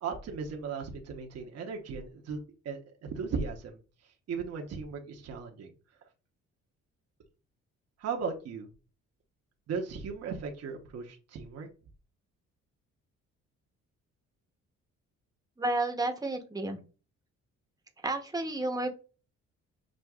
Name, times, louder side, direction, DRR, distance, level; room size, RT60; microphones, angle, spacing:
voice 1, 0.0-2.4 2.6-3.8 4.3-5.7 8.0-8.7 9.7-11.7, right 5 dB, 55° right, 2 dB, 0.9 m, -36 dB
voice 2, 15.6-16.8 18.0-19.0, right 2 dB, 10° right, 4 dB, 0.9 m, -31 dB
6.2 x 2.5 x 2.3 m, 0.34 s
cardioid pair, 90°, 30 cm